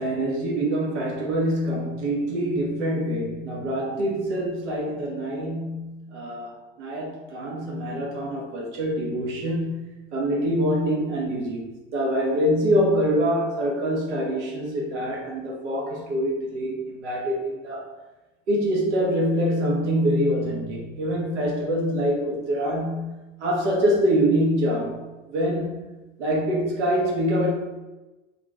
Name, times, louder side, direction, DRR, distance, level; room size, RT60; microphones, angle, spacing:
voice 1, 0.0-9.8 10.1-11.7 11.9-17.9 18.5-25.0 25.3-25.8 26.2-27.5, equal, 65° right, -2 dB, 0.9 m, -25 dB
2.9 x 2.6 x 3.4 m, 1.1 s
figure-of-eight pair, 75°, 37 cm